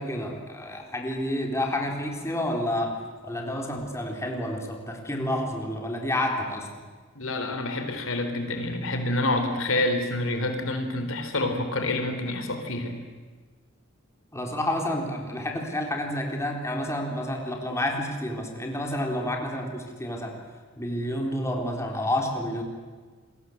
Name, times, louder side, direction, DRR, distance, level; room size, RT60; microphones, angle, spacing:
voice 1, 0.0-2.9 3.2-6.7 14.3-20.4 20.8-22.6, left 1 dB, 15° left, 1 dB, 4.0 m, -29 dB
voice 2, 7.2-13.0, left 2 dB, 75° left, 6 dB, 3.7 m, -27 dB
29.0 x 22.0 x 8.0 m, 1.5 s
head